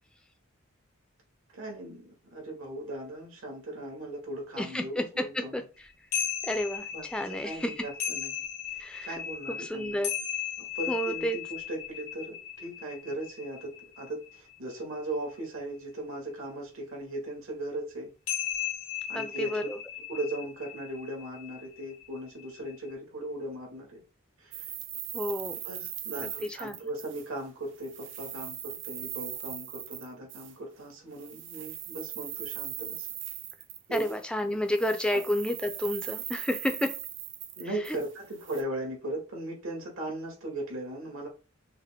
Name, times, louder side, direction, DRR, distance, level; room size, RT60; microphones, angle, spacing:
voice 1, 1.5-5.6 6.9-8.3 8.7-10.0 10.6-18.1 19.1-19.7 20.1-24.0 24.4-24.7 25.6-33.1 33.9-34.1 35.1-35.2 37.6-41.3, right 1 dB, 80° right, 0 dB, 1.7 m, -38 dB
voice 2, 4.6-5.6 6.4-7.7 8.8-9.1 9.5-10.1 10.9-11.4 19.1-19.6 25.1-25.5 26.2-26.8 33.9-36.9 37.9-38.0, left 1 dB, 5° left, 6 dB, 0.4 m, -31 dB
sound 1, 6.1-14.7 18.3-22.9, left 9 dB, 85° left, 1.1 m, -36 dB
sound 2, 24.5-27.5 27.8-30.6 31.2-34.4 34.7-38.6, right 11 dB, 60° right, 0.6 m, -40 dB
5.6 x 2.1 x 3.5 m, 0.34 s
head